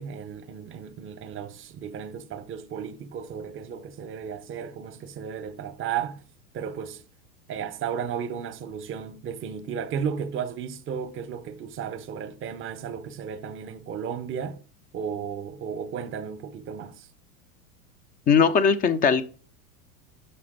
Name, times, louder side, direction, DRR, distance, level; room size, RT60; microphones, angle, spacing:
voice 1, 0.0-6.2 6.5-7.0 7.5-14.6 14.9-17.1, right 7 dB, 25° right, 0.7 m, -34 dB
voice 2, 18.3-19.2, left 6 dB, 20° left, 0.3 m, -19 dB
5.8 x 4.3 x 5.1 m
hypercardioid pair, 95°, 46 cm